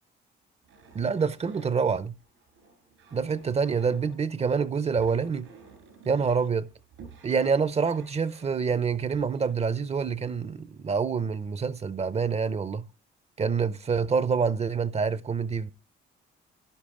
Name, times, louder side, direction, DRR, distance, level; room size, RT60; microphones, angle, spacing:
sound 1, 0.6-10.9 11.6-11.8 12.2-12.7, right 4 dB, 90° right, 4.4 m, -53 dB
voice 1, 0.9-2.1 3.1-5.5 6.0-6.7 7.2-12.9 13.4-15.7, right 5 dB, 30° right, 0.6 m, -26 dB
11.0 x 10.0 x 3.6 m
cardioid pair, 90°, 20 cm